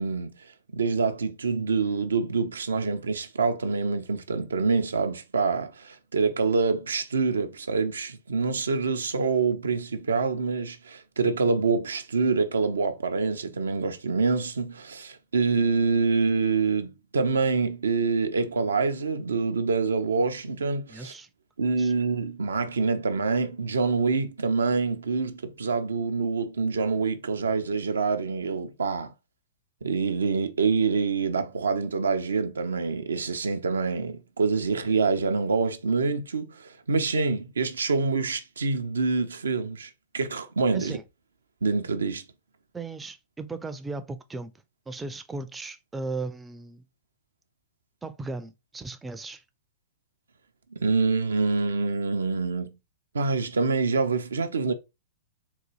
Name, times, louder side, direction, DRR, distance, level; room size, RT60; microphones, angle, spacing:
voice 1, 0.0-21.1 21.6-29.1 29.8-41.0 41.6-42.2 50.8-52.7 53.1-54.7, right 4 dB, 75° right, 0.4 m, -26 dB
voice 2, 20.9-21.3 21.8-21.9 40.7-41.0 42.7-44.5 44.9-46.8 48.0-49.4, right 3 dB, 10° right, 0.4 m, -36 dB
3.8 x 2.3 x 3.0 m
figure-of-eight pair, 105°, 0 cm